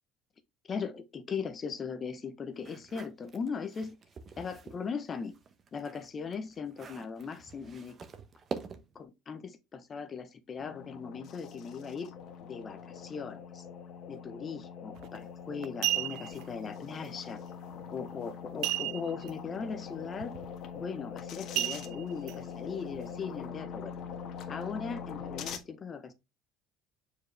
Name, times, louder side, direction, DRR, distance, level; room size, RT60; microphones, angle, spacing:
voice 1, 0.7-4.0 4.4-5.3 5.7-8.0 8.9-12.1 12.4-13.6 14.1-17.4 17.9-20.3 20.7-24.0 24.5-26.1, left 5 dB, 25° left, 0.9 m, -39 dB
sound 1, 2.6-4.8 5.2-9.0, right 5 dB, 30° right, 1.1 m, -45 dB
sound 2, 10.6-25.6, left 7 dB, 50° left, 1.5 m, -43 dB
sound 3, 15.0-15.2 15.6-16.4 18.6-19.3 19.6-19.7 20.2-20.5 21.6-22.3 22.9-23.0, right 15 dB, 65° right, 0.4 m, -32 dB
7.2 x 4.9 x 3.3 m
cardioid pair, 145°, 0 cm